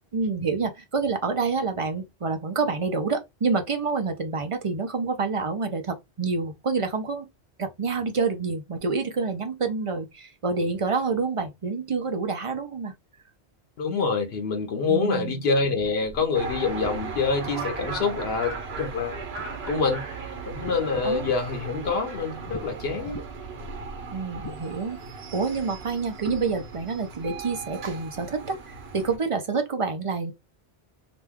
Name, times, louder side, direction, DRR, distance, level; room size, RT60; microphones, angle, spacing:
voice 1, 0.1-7.3 7.6-12.9 14.9-15.4 21.0-21.2 24.1-25.0 25.3-30.3, right 4 dB, 40° right, 0.5 m, -27 dB
voice 2, 13.8-19.2 19.7-20.0 20.5-23.3, left 4 dB, 75° left, 0.9 m, -26 dB
sound 1, 15.8-19.0 19.4-20.0 20.3-22.0 22.4-22.6 23.0-23.6 24.3-24.6, left 3 dB, 35° left, 0.3 m, -42 dB
sound 2, 16.3-29.2, right 4 dB, 70° right, 1.1 m, -37 dB
2.9 x 2.2 x 3.4 m
omnidirectional pair, 1.1 m